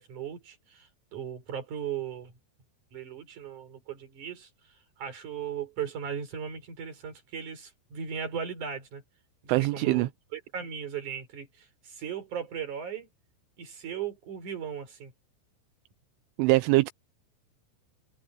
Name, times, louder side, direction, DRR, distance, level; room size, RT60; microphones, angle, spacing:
voice 1, 0.0-2.3 2.9-4.5 5.0-9.0 9.4-13.1 13.6-15.1, right 8 dB, 40° right, 5.5 m, -37 dB
voice 2, 9.5-10.1 16.4-16.9, right 20 dB, 80° right, 3.0 m, -23 dB
omnidirectional pair, 6.0 m